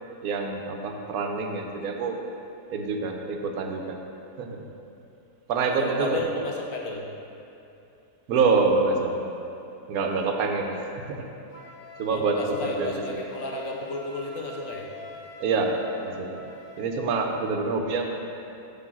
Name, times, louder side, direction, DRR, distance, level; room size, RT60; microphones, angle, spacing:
voice 1, 0.2-2.2 2.7-4.0 4.4-4.6 5.5-6.2 8.3-9.2 9.9-11.2 12.0-12.9 15.4-16.4 16.8-18.2, right 4 dB, 75° right, 3 dB, 1.1 m, -26 dB
voice 2, 5.6-7.1 12.1-14.9, left 2 dB, 65° left, 0 dB, 1.1 m, -33 dB
Wind instrument woodwind instrument, 11.5-17.0, left 1 dB, 85° left, 1.8 m, -45 dB
7.7 x 3.7 x 6.0 m, 2.8 s
omnidirectional pair, 1.6 m